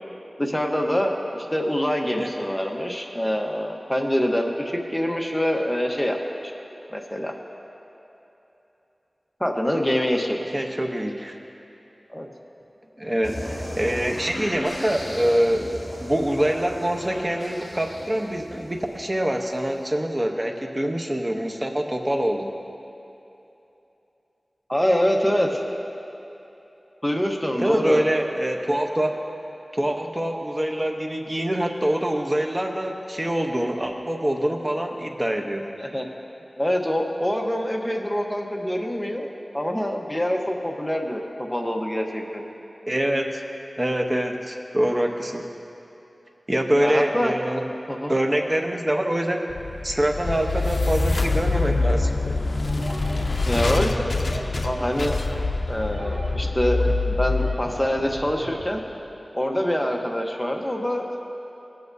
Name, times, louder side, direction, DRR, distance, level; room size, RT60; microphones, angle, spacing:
voice 1, 0.4-6.2 6.9-7.3 9.4-10.6 12.1-12.3 24.7-25.6 27.0-28.1 35.8-36.1 36.6-42.5 46.8-47.3 47.9-48.1 53.4-53.9 54.6-55.1 55.7-58.8 59.3-61.1, equal, 10° left, 1 dB, 1.0 m, -25 dB
voice 2, 10.5-11.4 13.0-15.7 16.0-22.5 27.6-29.1 29.7-35.7 42.9-43.4 43.8-45.4 46.5-47.7 48.1-49.5 49.8-52.4, right 1 dB, 25° right, 2 dB, 0.9 m, -25 dB
sound 1, 13.2-19.8, equal, 30° left, 1.6 m, -37 dB
sound 2, 49.5-58.7, left 3 dB, 70° left, 0.4 m, -25 dB
sound 3, 52.6-58.6, right 1 dB, 50° right, 1.1 m, -37 dB
17.0 x 8.6 x 2.7 m, 3.0 s
wide cardioid pair, 65°, 0 cm